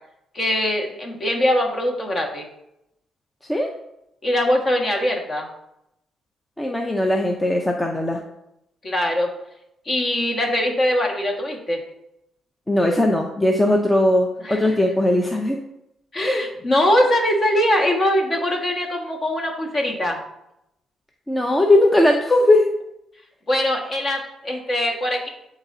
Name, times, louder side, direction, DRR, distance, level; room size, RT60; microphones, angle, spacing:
voice 1, 0.3-2.5 4.2-5.5 8.8-9.3 9.9-11.8 14.4-14.8 16.1-20.2 23.5-25.3, left 1 dB, 40° left, 0 dB, 1.7 m, -22 dB
voice 2, 6.6-8.2 12.7-15.6 16.2-16.5 21.3-22.7, left 1 dB, 15° left, 2 dB, 0.7 m, -19 dB
12.0 x 4.1 x 2.8 m, 0.82 s
cardioid pair, 90°, 0 cm